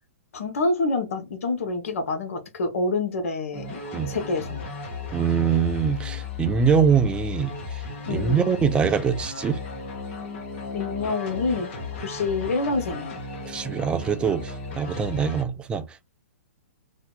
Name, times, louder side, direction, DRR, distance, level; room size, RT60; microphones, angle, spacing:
voice 1, 0.3-3.6 4.0-4.6 8.1-8.4 10.7-13.2, left 3 dB, 70° left, 1.0 m, -27 dB
sound 1, 3.5-15.4, left 4 dB, 50° left, 1.1 m, -35 dB
voice 2, 5.1-7.8 8.1-9.6 13.5-15.8, right 6 dB, 10° right, 0.3 m, -23 dB
2.7 x 2.3 x 3.6 m
hypercardioid pair, 140°, 8 cm